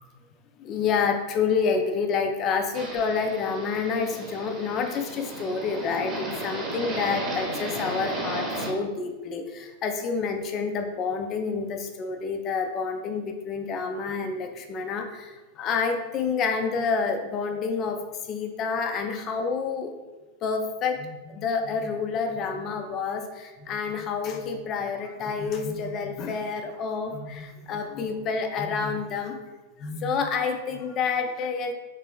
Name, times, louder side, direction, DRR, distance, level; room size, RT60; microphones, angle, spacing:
voice 1, 0.6-19.9 20.4-29.4 29.8-31.7, left 5 dB, 35° left, 5 dB, 0.4 m, -28 dB
sound 1, 2.7-8.7, right 1 dB, 25° right, 0.9 m, -34 dB
3.3 x 3.2 x 3.5 m, 1.1 s
figure-of-eight pair, 90°, 0 cm